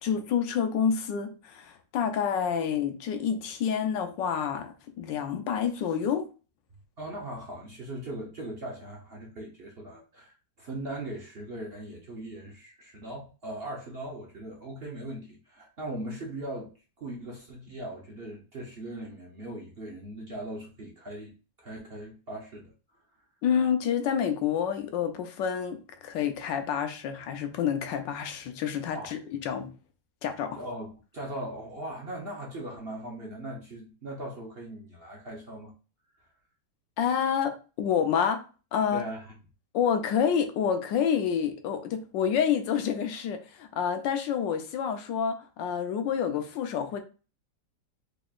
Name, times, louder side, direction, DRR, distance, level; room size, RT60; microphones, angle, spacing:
voice 1, 0.0-6.3 23.4-29.7 30.2-30.6 37.0-39.0 39.7-47.0, left 7 dB, 85° left, 1.4 m, -28 dB
voice 2, 7.0-16.7 17.0-22.7 28.9-29.1 30.5-35.7 38.9-39.3, right 1 dB, 45° right, 0.8 m, -39 dB
5.0 x 3.0 x 2.4 m
omnidirectional pair, 1.9 m